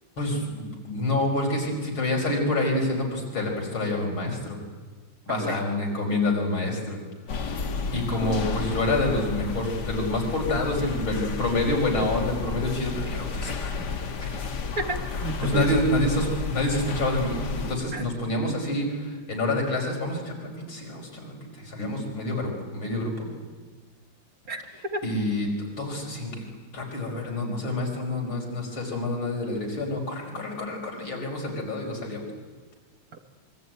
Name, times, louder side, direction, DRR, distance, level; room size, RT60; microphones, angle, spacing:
voice 1, 0.2-4.6 5.3-7.0 7.9-13.7 14.2-14.5 15.4-23.3 25.0-25.5 25.8-26.5 26.7-32.2, left 1 dB, 70° left, 0 dB, 5.9 m, -27 dB
voice 2, 5.3-5.6 14.8-15.8 17.9-18.1 24.5-24.6 24.9-25.1 33.1-33.2, right 2 dB, 45° right, 6 dB, 1.8 m, -31 dB
sound 1, 7.3-17.8, left 5 dB, 55° left, 2.1 m, -32 dB
25.0 x 23.0 x 9.3 m, 1.4 s
omnidirectional pair, 2.3 m